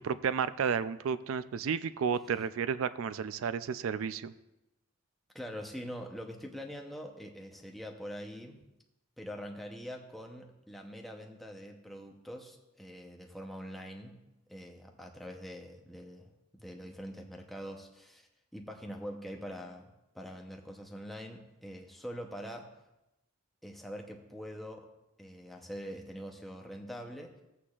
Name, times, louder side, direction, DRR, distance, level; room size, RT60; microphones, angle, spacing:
voice 1, 0.0-4.3, right 6 dB, 80° right, 14 dB, 0.4 m, -32 dB
voice 2, 5.3-8.6 9.2-14.2 14.5-22.8 23.6-24.9 25.2-27.4, equal, ahead, 1 dB, 0.7 m, -44 dB
14.5 x 8.4 x 2.4 m, 0.92 s
head